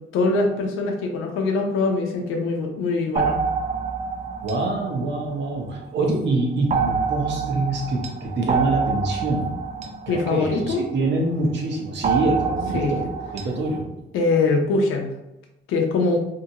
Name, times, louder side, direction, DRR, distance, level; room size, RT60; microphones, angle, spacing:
voice 1, 0.1-3.4 10.1-10.8 12.7-12.9 14.1-15.1 15.7-16.2, left 3 dB, 90° left, 2 dB, 0.6 m, -22 dB
sound 1, 3.2-5.9 6.7-11.2 12.0-13.8, right 5 dB, 35° right, 0.4 m, -27 dB
voice 2, 4.4-13.8, right 2 dB, 65° right, 0 dB, 0.9 m, -25 dB
2.8 x 2.5 x 2.8 m, 0.92 s
cardioid pair, 90°, 20 cm